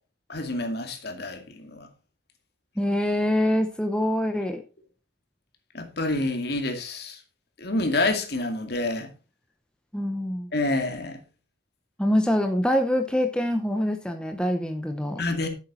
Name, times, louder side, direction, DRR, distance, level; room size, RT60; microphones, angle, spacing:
voice 1, 0.3-1.9 5.7-7.2 7.6-9.1 10.5-11.2 15.2-15.5, left 2 dB, 55° left, 2.4 m, -28 dB
voice 2, 2.8-4.6 9.9-10.5 12.0-15.2, left 1 dB, 5° left, 0.8 m, -25 dB
11.0 x 8.3 x 4.2 m
head